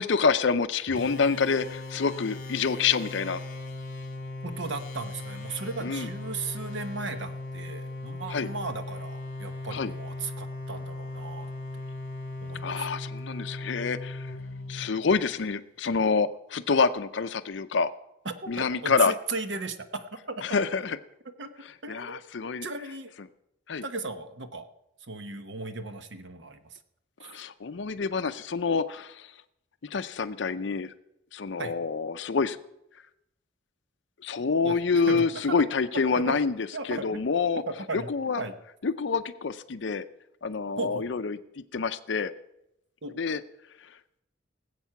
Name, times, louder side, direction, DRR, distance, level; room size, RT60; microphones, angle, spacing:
voice 1, 0.0-3.4 5.8-6.1 8.3-8.5 9.7-9.9 12.6-14.3 14.7-17.9 18.5-19.1 20.4-21.0 21.9-22.7 23.7-23.8 27.2-29.3 29.8-30.9 31.3-32.6 34.2-37.6 37.9-38.4 38.8-40.0 40.4-41.4 41.7-42.3 43.2-43.4, left 5 dB, 65° left, 11 dB, 0.5 m, -27 dB
sound 1, 0.9-15.4, left 2 dB, 45° left, 3.0 m, -38 dB
voice 2, 4.4-11.8 12.4-12.9 18.2-20.6 21.4-21.5 21.8-22.3 22.6-23.1 23.8-24.7 25.0-26.8 27.2-27.3 31.6-31.8 34.6-34.8 35.1-35.6 36.1-36.4 36.7-37.2 37.7-38.1 38.4-38.5 40.8-41.1 43.0-43.1, right 3 dB, 65° right, 9 dB, 1.1 m, -36 dB
18.5 x 8.2 x 5.9 m, 0.83 s
head